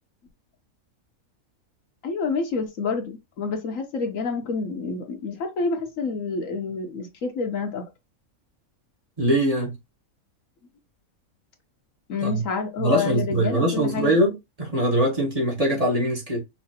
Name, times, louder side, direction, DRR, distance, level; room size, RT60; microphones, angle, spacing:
voice 1, 2.0-7.9 12.1-14.1, left 4 dB, 70° left, 1.4 m, -28 dB
voice 2, 9.2-9.8 12.2-12.4 12.8-16.4, right 1 dB, 25° right, 1.4 m, -22 dB
5.7 x 2.9 x 2.8 m
omnidirectional pair, 1.4 m